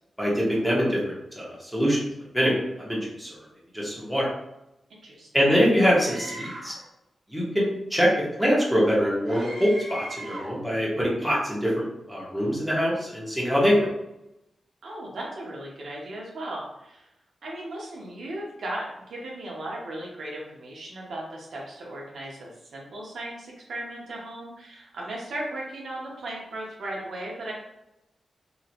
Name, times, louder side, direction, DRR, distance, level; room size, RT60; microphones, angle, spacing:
voice 1, 0.2-2.0 2.3-3.3 3.7-4.3 5.3-6.7 7.3-8.1 8.4-13.9, equal, ahead, -6 dB, 1.0 m, -24 dB
Screaming, 6.0-6.8 9.3-10.6, right 1 dB, 50° right, 1.4 m, -38 dB
voice 2, 14.8-17.1 17.4-27.5, right 1 dB, 80° right, -3 dB, 0.8 m, -36 dB
3.0 x 2.7 x 2.5 m, 0.88 s
wide cardioid pair, 105°, 0 cm